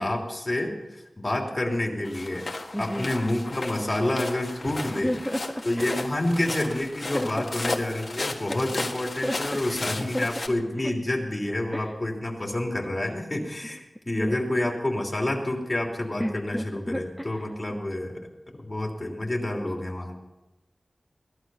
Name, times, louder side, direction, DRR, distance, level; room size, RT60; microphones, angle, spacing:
voice 1, 0.0-5.1 5.6-18.2 18.6-20.2, left 1 dB, 25° left, 0 dB, 3.0 m, -28 dB
sound 1, 2.0-10.5, left 2 dB, 45° left, 1.6 m, -35 dB
voice 2, 2.7-3.1 4.9-6.0 7.1-7.5 9.2-9.4 9.7-9.9 10.1-10.3 10.8-10.9 11.7-11.9 14.2-14.3 16.2-17.4, equal, 5° left, 5 dB, 0.7 m, -32 dB
17.5 x 12.0 x 5.5 m, 1.0 s
wide cardioid pair, 95°, 0 cm